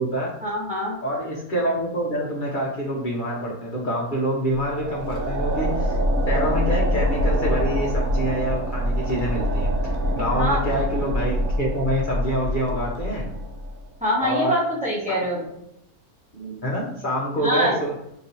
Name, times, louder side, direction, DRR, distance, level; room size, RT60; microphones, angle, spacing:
voice 1, 0.4-1.0 10.3-10.6 14.0-15.4 17.4-17.8, equal, 5° right, -5 dB, 0.8 m, -24 dB
voice 2, 1.0-6.0 6.3-13.4 14.2-14.5 15.1-15.2 16.3-17.9, right 1 dB, 45° left, -4 dB, 0.7 m, -26 dB
sound 1, 4.5-13.8, equal, 70° right, 1.0 m, -25 dB
2.9 x 2.6 x 4.3 m, 0.79 s
omnidirectional pair, 1.6 m